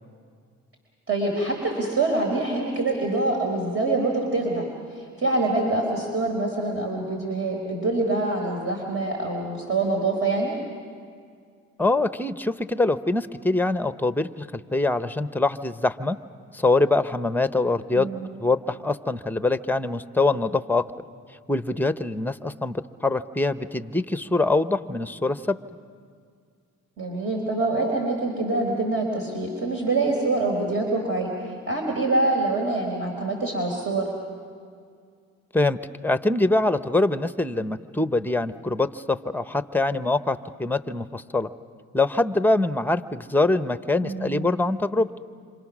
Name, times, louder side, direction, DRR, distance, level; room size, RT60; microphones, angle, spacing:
voice 1, 1.1-10.5 17.9-18.3 27.0-34.1 44.0-44.5, right 2 dB, 45° right, 0 dB, 4.0 m, -25 dB
voice 2, 11.8-16.2 16.5-18.1 18.4-20.8 21.5-25.6 35.5-41.5 41.9-45.2, left 2 dB, 5° left, 11 dB, 0.8 m, -24 dB
27.5 x 26.5 x 6.2 m, 2.2 s
cardioid pair, 90°, 30 cm